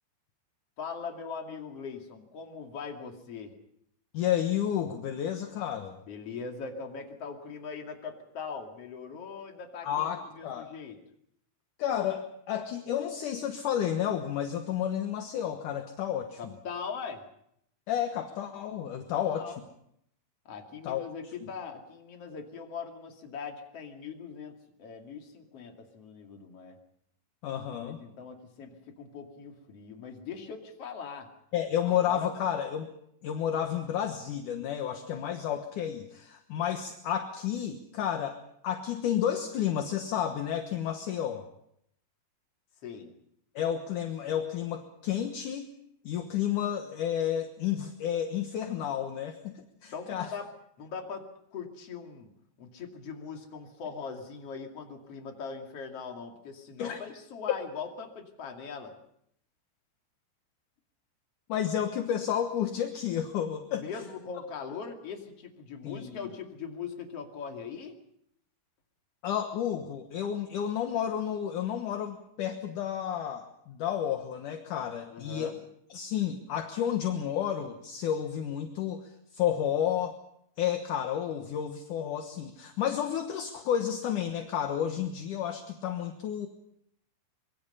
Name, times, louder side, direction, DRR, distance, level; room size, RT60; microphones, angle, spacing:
voice 1, 0.8-3.5 6.0-11.0 16.4-17.3 19.3-19.6 20.4-26.8 27.8-31.3 31.8-32.5 42.8-43.1 49.9-50.5 50.8-52.3 52.6-59.0 63.7-68.0 75.1-75.6, left 5 dB, 40° left, 2 dB, 2.9 m, -41 dB
voice 2, 4.1-6.0 9.8-10.7 11.8-16.5 17.9-19.5 20.8-21.0 21.4-21.5 27.4-28.0 31.5-32.9 33.2-38.4 38.6-41.5 43.6-45.7 46.0-50.3 56.8-57.0 61.5-63.8 65.8-66.2 69.2-75.5 75.9-80.2 80.6-86.5, left 9 dB, 65° left, 5 dB, 2.2 m, -31 dB
25.5 x 22.5 x 5.5 m, 0.73 s
omnidirectional pair, 5.0 m